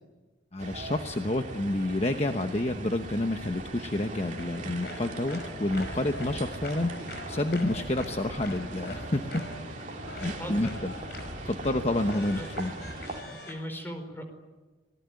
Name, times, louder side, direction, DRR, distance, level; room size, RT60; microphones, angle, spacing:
voice 1, 0.5-9.5 10.1-10.9 11.5-12.7, left 1 dB, 35° left, 6 dB, 1.0 m, -29 dB
sound 1, 0.6-13.2, right 2 dB, 40° right, 2.8 m, -40 dB
sound 2, 4.1-13.5, left 2 dB, 55° left, 5.7 m, -44 dB
voice 2, 10.4-10.8 12.4-12.5 13.4-14.2, equal, 10° left, 6 dB, 4.6 m, -38 dB
27.5 x 19.0 x 9.6 m, 1.2 s
head